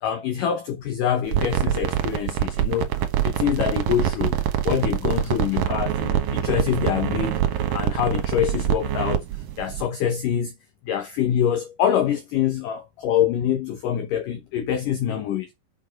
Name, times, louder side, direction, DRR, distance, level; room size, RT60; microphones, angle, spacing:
voice 1, 0.0-4.4 4.6-7.4 7.7-9.2 9.6-10.5 10.8-15.5, left 9 dB, 70° left, 2.1 m, -25 dB
sound 1, 1.3-9.9, right 11 dB, 70° right, 2.3 m, -25 dB
7.7 x 6.4 x 5.2 m
omnidirectional pair, 5.1 m